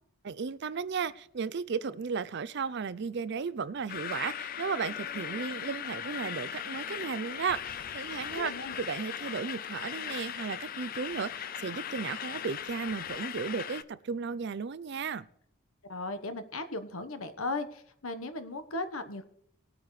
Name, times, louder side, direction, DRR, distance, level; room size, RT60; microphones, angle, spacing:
voice 1, 0.2-15.3, right 5 dB, 50° right, 16 dB, 0.5 m, -35 dB
sound 1, 3.9-13.8, left 9 dB, 40° left, 0.4 m, -38 dB
voice 2, 8.3-8.8 15.9-19.3, left 2 dB, 70° left, 9 dB, 1.1 m, -37 dB
20.0 x 8.6 x 3.2 m, 0.69 s
head